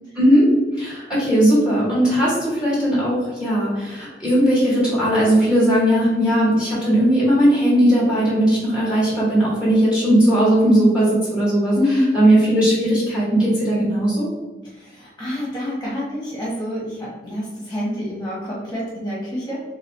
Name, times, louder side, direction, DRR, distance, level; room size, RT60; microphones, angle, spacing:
voice 1, 0.2-0.5 0.8-14.3, right 1 dB, 5° right, -8 dB, 1.4 m, -18 dB
voice 2, 11.7-12.2 14.6-19.6, left 1 dB, 10° left, -7 dB, 1.4 m, -26 dB
3.7 x 3.6 x 3.4 m, 1.2 s
head